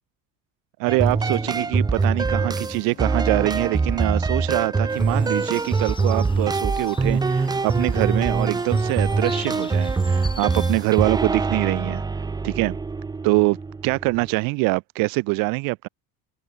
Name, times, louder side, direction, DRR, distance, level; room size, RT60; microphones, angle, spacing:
sound 1, 0.8-9.7, left 10 dB, 40° left, 7.5 m, -47 dB
voice 1, 0.8-12.0 12.4-12.8 13.2-13.6 13.8-15.9, right 26 dB, 85° right, 2.8 m, -24 dB
sound 2, 0.9-14.3, right 4 dB, 10° right, 1.1 m, -24 dB
sound 3, 4.9-11.0, left 4 dB, 15° left, 1.9 m, -41 dB
cardioid pair, 170°, 33 cm